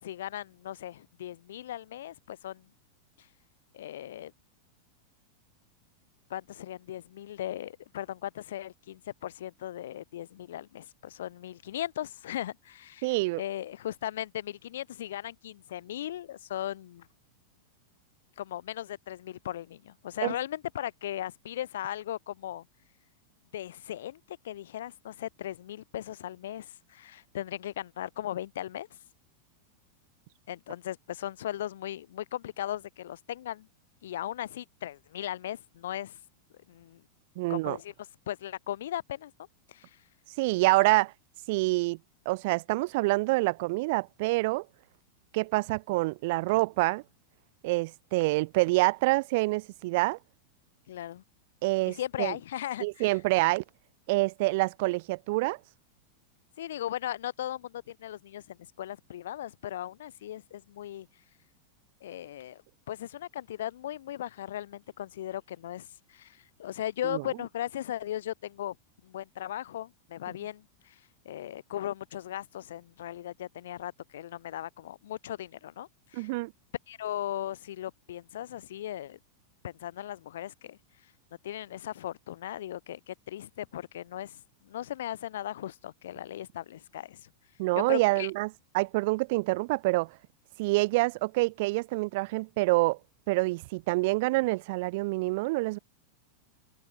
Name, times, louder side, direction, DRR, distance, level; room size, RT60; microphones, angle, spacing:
voice 1, 0.0-2.7 3.2-3.3 3.7-4.3 6.3-17.1 18.4-22.6 23.5-28.9 30.5-33.7 34.0-36.2 36.7-37.0 37.5-37.9 38.3-39.3 39.7-40.0 50.9-51.2 52.0-53.2 56.6-61.1 62.0-62.6 62.9-68.8 69.0-71.0 71.2-76.3 76.9-79.2 79.6-80.8 81.4-87.3 87.9-88.3, left 12 dB, 60° left, 3.1 m, -37 dB
voice 2, 13.0-13.4 20.2-20.3 37.4-37.8 40.4-41.1 41.5-42.0 42.3-44.7 45.3-47.0 47.6-50.2 51.6-52.3 52.8-53.6 54.1-55.6 67.1-67.2 76.1-76.5 87.6-88.5 88.7-90.1 90.6-93.0 93.3-95.8, right 23 dB, 50° right, 0.5 m, -26 dB
open air
figure-of-eight pair, 90°, 0 cm